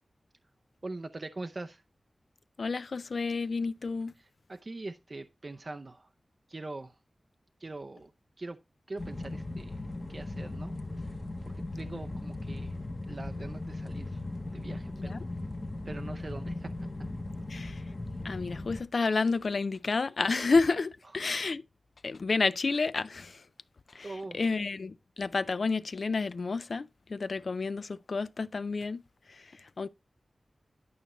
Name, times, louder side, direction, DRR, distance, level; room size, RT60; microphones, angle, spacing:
voice 1, 0.8-1.8 4.5-6.1 6.5-7.0 7.6-8.1 8.4-8.6 8.9-10.8 11.1-11.2 11.7-12.8 13.1-14.2 14.5-15.2 15.9-16.7 24.0-24.4, right 2 dB, 45° right, 0.5 m, -42 dB
voice 2, 2.6-4.1 15.0-15.2 17.5-17.8 18.2-21.6 22.0-23.4 23.9-29.0 29.3-29.9, left 4 dB, 65° left, 0.4 m, -30 dB
sound 1, 9.0-18.8, left 2 dB, 35° left, 1.0 m, -38 dB
11.0 x 5.4 x 3.0 m
wide cardioid pair, 60°, 0 cm